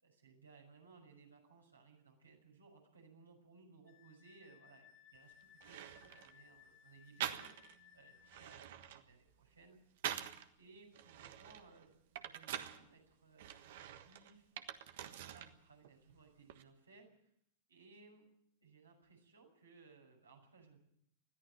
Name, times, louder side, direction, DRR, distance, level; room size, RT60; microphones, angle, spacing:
voice 1, 0.0-9.8 10.6-12.0 12.2-14.5 15.0-17.2 17.7-18.3 18.6-20.8, right 4 dB, 75° right, 0 dB, 6.1 m, -62 dB
Wind instrument woodwind instrument, 3.9-8.6, left 9 dB, 35° left, 1.3 m, -64 dB
sound 1, 5.1-5.2 5.6-6.4 7.2-7.8 8.2-10.5 10.9-12.8 13.4-15.5 15.8-16.6, right 11 dB, 55° right, 1.4 m, -45 dB
21.0 x 14.0 x 9.1 m, 0.72 s
figure-of-eight pair, 90°, 0 cm